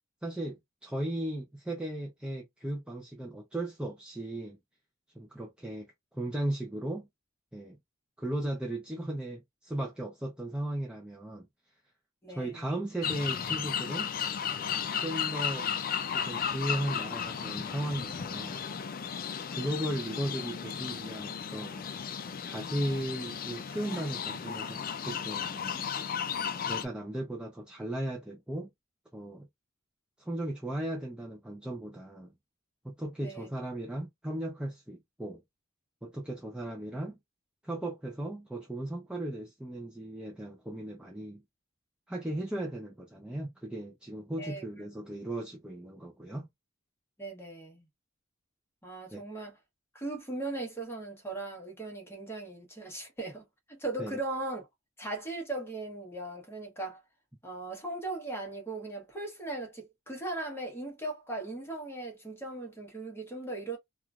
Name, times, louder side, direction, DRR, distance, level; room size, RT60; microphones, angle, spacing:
voice 1, 0.2-4.6 5.1-7.1 7.5-7.8 8.2-11.5 12.3-14.1 15.0-15.7 16.1-18.6 19.5-21.9 22.4-25.9 26.7-28.7 29.1-29.4 30.2-32.3 32.8-35.4 36.0-37.2 37.6-41.4 42.1-46.5 49.1-49.2 54.0-54.2, right 1 dB, 5° right, 0.5 m, -36 dB
voice 2, 12.2-12.7 33.2-33.5 44.4-44.6 47.2-47.8 48.8-49.6 49.9-53.4 53.7-54.7 55.0-57.0 57.4-63.8, right 2 dB, 10° left, 1.2 m, -38 dB
sound 1, 13.0-26.8, left 7 dB, 45° left, 0.4 m, -34 dB
3.0 x 2.4 x 2.4 m
head